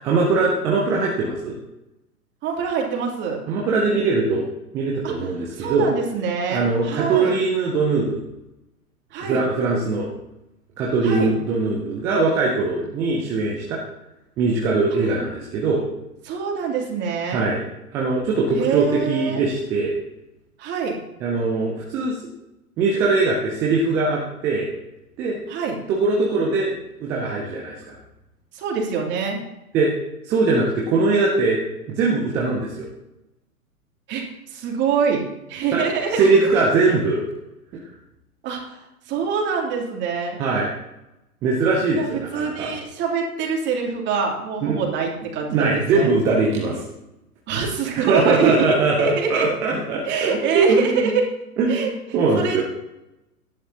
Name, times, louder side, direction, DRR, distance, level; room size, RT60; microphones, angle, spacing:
voice 1, 0.0-1.5 3.5-4.4 4.7-5.9 6.5-8.2 9.2-10.1 10.8-13.8 14.4-15.8 17.3-17.6 17.9-19.9 21.2-22.2 22.8-24.7 25.2-25.4 25.9-26.7 27.0-27.9 29.7-29.9 30.2-31.6 32.0-32.9 35.7-35.8 36.1-37.2 40.4-40.7 41.4-42.8 44.6-44.8 45.5-46.8 47.9-51.1 51.6-52.6, right 3 dB, 5° right, -3 dB, 0.4 m, -21 dB
voice 2, 2.4-3.4 5.0-5.1 5.5-7.4 9.1-9.4 11.0-11.3 16.2-17.4 18.5-19.4 20.6-21.0 25.5-25.8 28.5-29.4 34.1-35.2 35.5-36.2 38.4-40.4 41.9-46.1 47.5-48.7 49.0-49.5 50.0-51.2 51.7-51.9 52.3-52.6, right 5 dB, 25° right, -1 dB, 3.0 m, -25 dB
17.0 x 11.5 x 2.9 m, 0.91 s
figure-of-eight pair, 115°, 46 cm